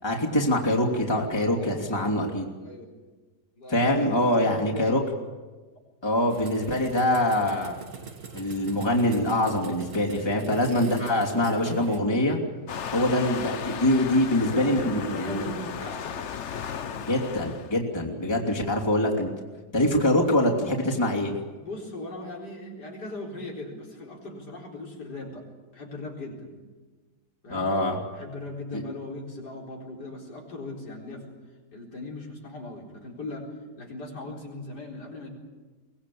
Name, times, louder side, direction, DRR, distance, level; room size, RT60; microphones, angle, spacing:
voice 1, 0.0-2.4 3.7-5.0 6.0-7.8 8.3-12.4 12.9-15.4 17.1-19.3 19.7-21.3 27.5-28.0 28.7-28.8, left 1 dB, 15° left, -2 dB, 2.9 m, -24 dB
voice 2, 1.6-2.9 3.6-5.1 10.3-10.7 14.5-16.3 18.1-18.3 18.5-18.7 21.5-25.5 25.7-26.6 27.4-27.7 28.1-31.4 31.7-35.3, left 2 dB, 90° left, -1 dB, 4.8 m, -39 dB
sound 1, 6.3-12.0, right 5 dB, 50° right, 2.0 m, -42 dB
Waves surf, 12.7-17.8, left 7 dB, 50° left, 1.1 m, -35 dB
23.0 x 19.0 x 8.5 m, 1.3 s
omnidirectional pair, 1.7 m